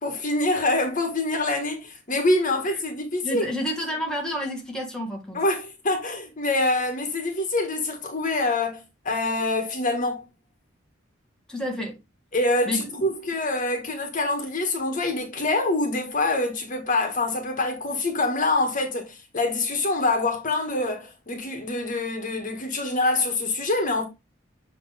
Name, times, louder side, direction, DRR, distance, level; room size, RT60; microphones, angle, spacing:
voice 1, 0.0-3.4 5.3-10.2 12.3-24.0, left 2 dB, 45° left, 1.8 m, -25 dB
voice 2, 3.2-5.4 11.5-12.0 12.6-12.9, equal, 5° left, 1.5 m, -30 dB
7.7 x 3.6 x 3.5 m
head